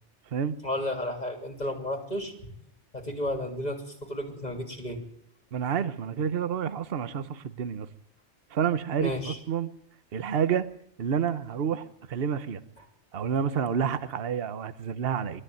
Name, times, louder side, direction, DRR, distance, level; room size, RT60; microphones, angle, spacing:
voice 1, 0.6-2.3 2.9-5.0 9.0-9.4, left 1 dB, 35° left, 1 dB, 3.1 m, -32 dB
voice 2, 5.5-7.9 8.5-9.7 10.1-10.7 11.0-12.6 13.1-15.4, right 7 dB, 55° right, 13 dB, 1.1 m, -29 dB
21.5 x 13.5 x 9.2 m, 0.71 s
omnidirectional pair, 1.2 m